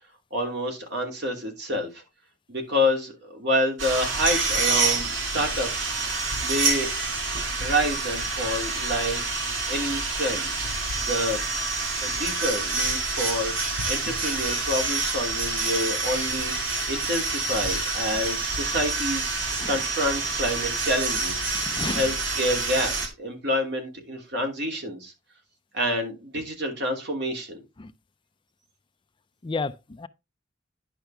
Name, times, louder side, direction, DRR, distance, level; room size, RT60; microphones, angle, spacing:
voice 1, 0.3-2.0 2.5-5.9 6.4-6.9 7.6-9.3 9.7-10.5 11.0-11.4 12.0-13.5 13.9-19.3 19.7-21.4 21.9-25.1 25.7-27.6, equal, 60° right, 2.8 m, -28 dB
sound 1, 3.8-23.1, right 3 dB, 90° right, 2.5 m, -27 dB
voice 2, 21.5-22.1 27.8-27.9 29.4-30.1, left 3 dB, 25° left, 0.5 m, -32 dB
10.5 x 5.8 x 3.4 m
head